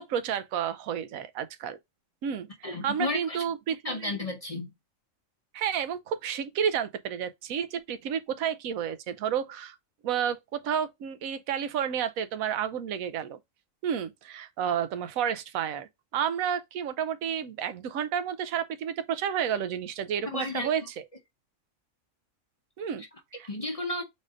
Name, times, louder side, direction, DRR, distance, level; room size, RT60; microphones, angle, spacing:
voice 1, 0.0-1.8 2.2-2.5 2.8-4.1 5.5-9.8 10.0-13.4 13.8-20.8 22.8-23.0 23.4-23.5, right 8 dB, 85° right, 1.1 m, -31 dB
voice 2, 2.6-3.4 3.8-4.7 20.2-20.7 23.0-23.2 23.5-24.0, left 2 dB, 35° left, 0.6 m, -33 dB
4.1 x 2.5 x 4.7 m
omnidirectional pair, 1.4 m